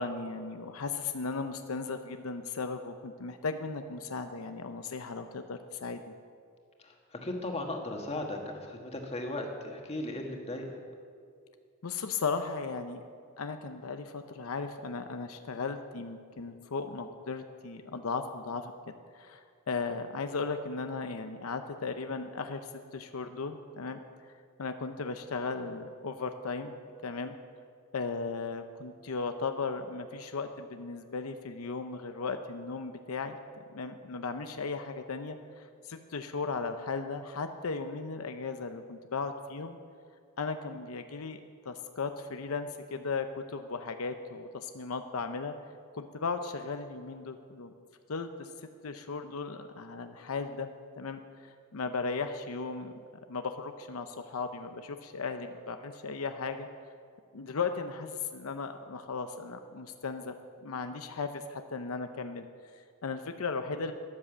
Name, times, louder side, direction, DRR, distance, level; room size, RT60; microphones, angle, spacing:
voice 1, 0.0-6.0 11.8-13.0 13.4-18.7 19.1-19.4 19.7-24.0 24.6-26.7 27.0-27.4 27.9-39.7 40.4-41.4 41.6-45.5 45.9-47.7 48.1-48.5 48.8-50.7 51.0-52.9 53.3-56.7 57.3-60.3 60.6-62.5 62.7-63.9, left 4 dB, 85° left, 8 dB, 0.7 m, -36 dB
voice 2, 6.8-10.8, left 1 dB, 30° left, 2 dB, 1.7 m, -37 dB
13.0 x 10.0 x 7.3 m, 2.2 s
head